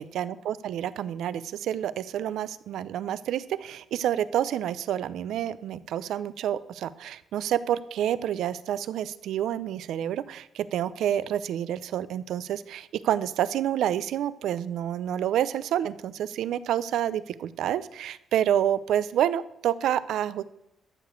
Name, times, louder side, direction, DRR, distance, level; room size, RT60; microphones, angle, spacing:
voice 1, 0.0-20.4, right 10 dB, 85° right, 16 dB, 0.5 m, -28 dB
13.0 x 5.0 x 7.9 m, 0.84 s
cardioid pair, 125°, 0 cm